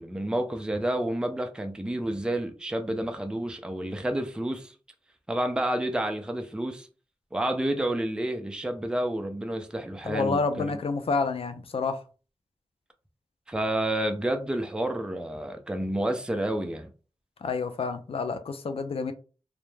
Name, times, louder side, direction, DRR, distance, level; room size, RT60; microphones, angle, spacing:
voice 1, 0.0-4.7 5.3-6.9 7.3-10.7 13.5-16.9, right 1 dB, 10° right, 0.4 m, -29 dB
voice 2, 10.0-12.0 17.4-19.1, left 4 dB, 65° left, 0.4 m, -29 dB
2.1 x 2.0 x 3.1 m
wide cardioid pair, 65°, 11 cm